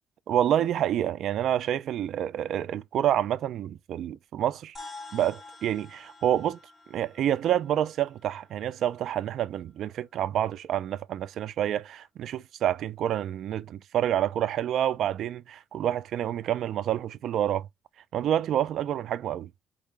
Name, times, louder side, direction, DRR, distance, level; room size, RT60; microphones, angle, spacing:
voice 1, 0.3-4.8 5.1-6.6 6.9-17.7 18.1-19.5, right 11 dB, 65° right, 0.5 m, -28 dB
sound 1, 4.7-9.3, left 3 dB, 15° left, 2.1 m, -48 dB
4.7 x 3.0 x 3.4 m
cardioid pair, 115°, 0 cm